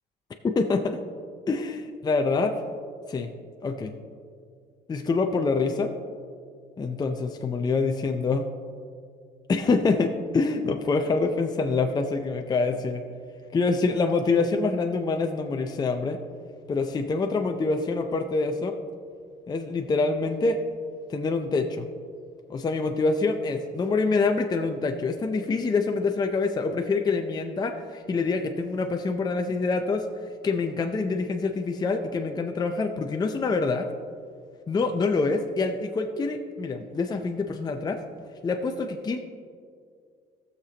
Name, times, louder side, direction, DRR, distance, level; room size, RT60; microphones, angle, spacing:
voice 1, 0.4-1.0 1.5-2.5 3.1-3.3 3.6-3.9 4.9-5.9 6.8-8.5 9.5-13.0 13.5-16.2 16.7-18.7 19.5-20.6 21.1-21.9 22.5-30.0 30.4-33.9 34.7-38.0 38.4-39.2, left 3 dB, 25° left, 5 dB, 0.5 m, -26 dB
17.5 x 6.7 x 2.9 m, 2.2 s
cardioid pair, 110°, 17 cm